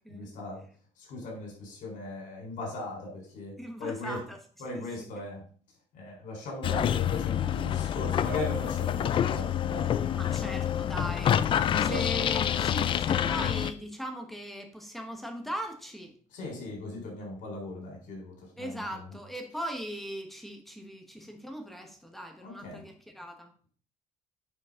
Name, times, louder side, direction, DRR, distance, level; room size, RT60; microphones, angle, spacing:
voice 1, 0.1-0.6 1.0-4.2 4.6-5.4 5.9-9.9 11.7-12.3 16.3-18.8 22.4-22.8, left 2 dB, 65° left, 0 dB, 4.2 m, -38 dB
voice 2, 3.6-4.4 4.7-5.1 10.1-16.1 18.6-23.5, equal, ahead, 4 dB, 1.3 m, -39 dB
sound 1, 6.6-13.7, left 10 dB, 35° left, 0.4 m, -27 dB
9.6 x 5.4 x 3.7 m, 0.43 s
cardioid pair, 145°, 15 cm